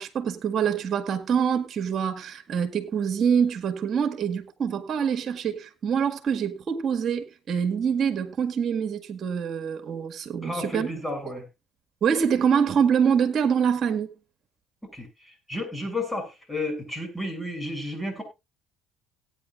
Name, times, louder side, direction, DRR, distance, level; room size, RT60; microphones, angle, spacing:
voice 1, 0.0-10.9 12.0-14.1, right 7 dB, 50° right, 1.8 m, -25 dB
voice 2, 10.4-11.4 14.9-15.1 15.5-18.2, left 1 dB, 10° left, 6.6 m, -32 dB
18.0 x 9.5 x 2.5 m
supercardioid pair, 70°, 0 cm